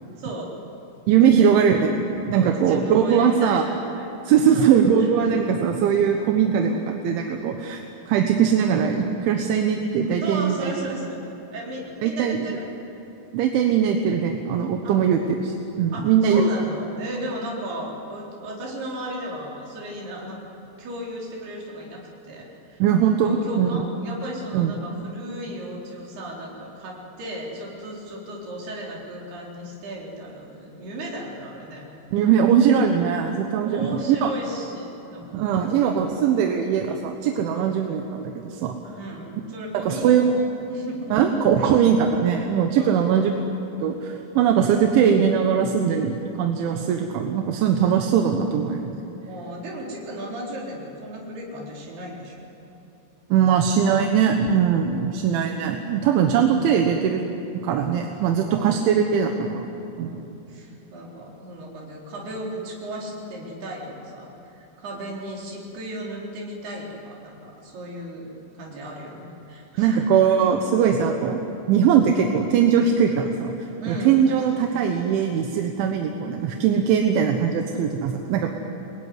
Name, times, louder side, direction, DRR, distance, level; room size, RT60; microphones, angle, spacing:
voice 1, 0.2-0.5 1.1-1.6 2.3-4.1 4.4-5.4 10.2-11.2 11.5-12.7 13.5-13.7 14.8-15.0 15.9-20.5 20.8-22.8 23.2-31.9 33.6-36.2 37.6-37.7 39.0-40.4 40.7-41.7 42.8-43.1 49.2-52.5 58.4-58.9 60.0-64.3 64.6-70.1 73.8-74.2, right 1 dB, 60° right, -3 dB, 6.1 m, -35 dB
voice 2, 1.1-3.6 4.3-7.8 8.1-10.7 12.0-12.5 13.3-16.5 22.8-23.8 24.5-24.7 32.1-34.3 35.3-38.8 39.8-40.3 41.1-43.3 43.8-49.0 53.3-57.2 57.6-59.7 60.0-60.2 69.8-73.5 73.9-78.5, right 7 dB, 80° right, 3 dB, 3.6 m, -21 dB
27.5 x 21.5 x 9.8 m, 3.0 s
omnidirectional pair, 5.4 m